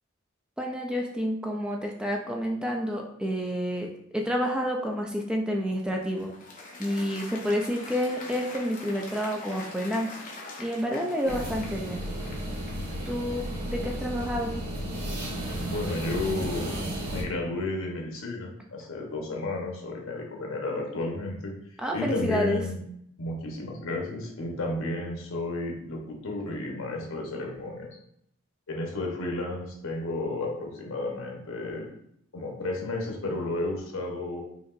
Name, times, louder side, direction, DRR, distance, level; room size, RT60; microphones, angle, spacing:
voice 1, 0.6-6.3 6.8-10.2 10.6-12.1 13.1-14.6 21.8-22.6, equal, 5° right, 1 dB, 0.4 m, -29 dB
Applause, 5.7-13.3, left 2 dB, 40° left, 0.8 m, -44 dB
sound 1, 11.2-17.2, right 1 dB, 45° right, 1.3 m, -33 dB
voice 2, 15.7-16.7 17.1-21.5 21.9-22.8 23.2-27.9 28.7-31.9 32.3-34.4, left 2 dB, 80° left, 0 dB, 1.0 m, -32 dB
5.1 x 2.9 x 2.5 m, 0.71 s
head